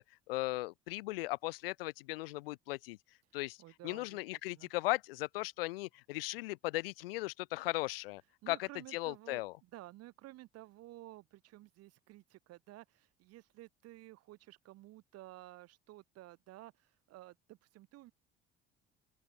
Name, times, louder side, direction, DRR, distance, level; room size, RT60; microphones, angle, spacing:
voice 1, 0.0-3.0 3.3-3.6 3.8-8.2 8.5-9.5, left 20 dB, 75° left, 0.6 m, -37 dB
voice 2, 3.6-4.7 8.4-18.1, right 17 dB, 55° right, 1.4 m, -54 dB
open air
hypercardioid pair, 55°, 29 cm